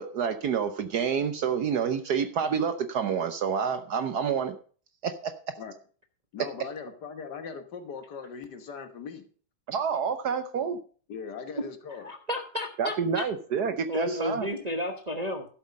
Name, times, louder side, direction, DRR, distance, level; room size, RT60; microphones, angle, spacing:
voice 1, 0.0-4.6 5.0-5.3 9.7-10.8 12.8-14.5, right 6 dB, 60° right, 9 dB, 1.2 m, -28 dB
voice 2, 6.3-9.3 11.1-12.1, left 6 dB, 60° left, 8 dB, 1.7 m, -40 dB
voice 3, 12.0-13.2 13.9-15.5, left 1 dB, 30° right, 3 dB, 0.9 m, -32 dB
12.0 x 7.8 x 5.3 m, 0.41 s
omnidirectional pair, 2.2 m